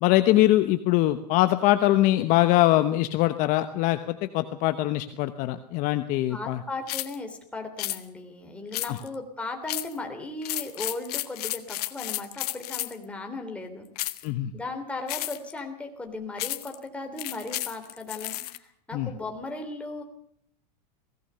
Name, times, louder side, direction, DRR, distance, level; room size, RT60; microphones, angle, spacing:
voice 1, 0.0-6.6 8.9-9.0 14.2-14.5 18.9-19.1, left 15 dB, 40° left, 10 dB, 1.0 m, -22 dB
voice 2, 6.3-13.9 14.5-20.0, left 2 dB, 5° left, 3 dB, 3.3 m, -37 dB
sound 1, 6.9-7.2 7.8-8.0 8.7-9.2 9.7-10.0 10.4-13.0 14.0-14.3 15.1-15.5 16.4-16.8 17.2-18.6, left 16 dB, 65° left, 1.5 m, -32 dB
22.0 x 17.5 x 6.9 m, 0.64 s
supercardioid pair, 155°, 21 cm